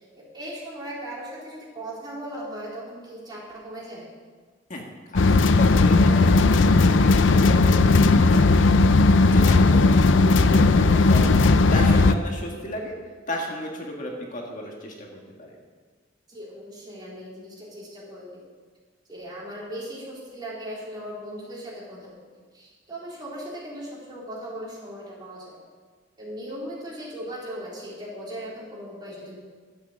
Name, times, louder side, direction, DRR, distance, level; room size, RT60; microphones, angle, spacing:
voice 1, 0.1-4.1 16.3-18.4 19.1-22.1 22.5-25.6 26.2-29.3, right 1 dB, 25° right, -6 dB, 4.2 m, -38 dB
voice 2, 4.7-6.8 7.0-8.9 9.3-12.9 13.3-15.5, left 1 dB, 45° left, 0 dB, 1.6 m, -34 dB
sound 1, 5.2-12.1, left 3 dB, 70° left, 0.5 m, -17 dB
11.5 x 8.4 x 7.2 m, 1.5 s
head